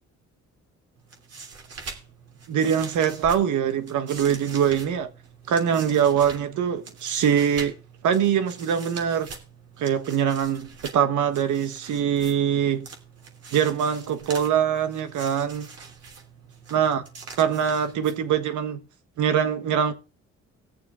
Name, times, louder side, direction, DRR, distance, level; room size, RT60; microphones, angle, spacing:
sound 1, 1.0-18.6, right 4 dB, 55° right, 3.2 m, -43 dB
voice 1, 2.5-5.1 5.5-7.7 8.0-9.3 9.8-12.9 13.5-15.7 16.7-17.0 17.4-18.8 19.2-19.9, right 8 dB, 80° right, 1.4 m, -23 dB
19.0 x 6.9 x 3.7 m
cardioid pair, 90°, 30 cm